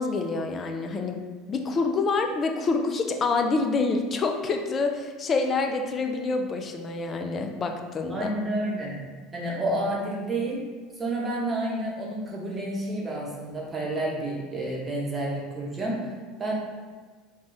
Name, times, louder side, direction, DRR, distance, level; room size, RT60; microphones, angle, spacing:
voice 1, 0.0-8.3, left 3 dB, 35° left, 4 dB, 0.4 m, -27 dB
voice 2, 8.1-9.0 9.3-10.7 11.0-16.1 16.4-16.5, right 1 dB, 20° right, -4 dB, 0.9 m, -30 dB
2.4 x 2.3 x 3.9 m, 1.4 s
hypercardioid pair, 75°, 0 cm